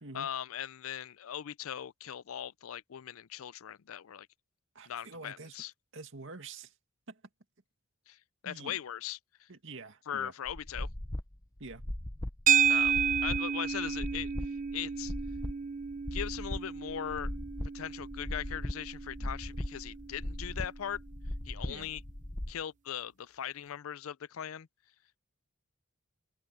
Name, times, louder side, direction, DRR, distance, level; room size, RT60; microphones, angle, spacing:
voice 1, 0.1-4.3 4.9-5.7 8.1-8.2 8.4-9.5 10.1-10.9 12.7-14.3 14.7-15.1 16.1-17.3 17.7-21.0 21.5-22.0 22.5-24.7, left 9 dB, 80° left, 0.5 m, -39 dB
voice 2, 4.7-5.6 5.9-6.7 7.1-7.2 8.4-8.8 9.5-10.3 11.6-11.8 19.2-19.3 21.7-21.9, right 3 dB, 65° right, 2.3 m, -46 dB
sound 1, 10.5-22.5, left 1 dB, 15° left, 0.7 m, -39 dB
sound 2, 12.5-20.9, right 7 dB, 40° right, 0.7 m, -32 dB
sound 3, 15.9-22.6, equal, 90° right, 6.2 m, -60 dB
head